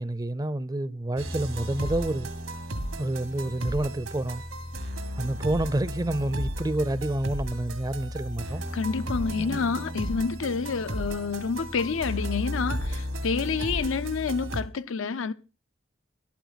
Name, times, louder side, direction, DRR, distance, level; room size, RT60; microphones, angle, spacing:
voice 1, 0.0-2.3 3.0-4.4 5.2-8.6 9.4-9.6, right 1 dB, 20° right, 0.5 m, -29 dB
sound 1, 1.2-14.6, equal, 85° right, 1.9 m, -34 dB
voice 2, 8.7-15.3, left 5 dB, 80° left, 0.6 m, -28 dB
13.0 x 12.0 x 4.0 m
head